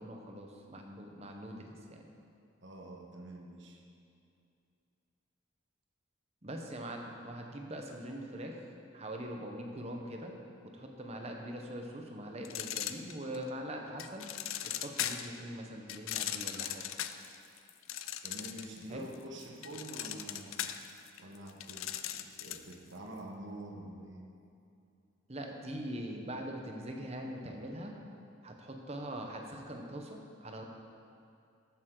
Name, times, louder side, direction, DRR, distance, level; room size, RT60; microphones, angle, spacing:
voice 1, 0.0-2.1 6.4-8.6 8.9-10.3 10.6-14.3 14.6-16.8 18.9-19.1 25.3-28.0 28.4-30.6, right 1 dB, 30° right, 2 dB, 1.0 m, -42 dB
voice 2, 2.6-3.8 18.2-20.6 21.2-24.2, right 1 dB, 60° right, 1 dB, 1.2 m, -46 dB
sound 1, 12.4-13.5 14.0-15.4 15.9-18.8 19.1-22.7, left 11 dB, 80° left, 0.5 m, -38 dB
13.0 x 9.1 x 3.9 m, 2.5 s
head